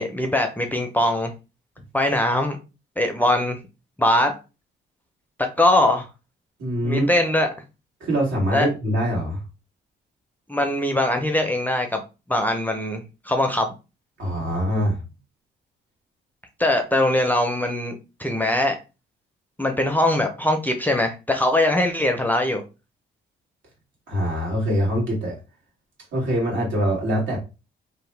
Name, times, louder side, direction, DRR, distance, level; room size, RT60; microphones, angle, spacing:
voice 1, 0.0-1.3 1.9-2.6 3.0-3.6 4.0-4.3 5.4-6.1 6.8-7.5 8.5-8.7 10.5-12.0 12.3-13.7 16.6-18.8 19.6-22.6, left 1 dB, 10° left, 4 dB, 0.5 m, -21 dB
voice 2, 6.6-7.1 8.0-9.4 14.2-15.0 24.1-25.3 26.1-27.4, equal, 70° right, -2 dB, 1.6 m, -23 dB
2.8 x 2.1 x 3.2 m, 0.29 s
cardioid pair, 90°, 20 cm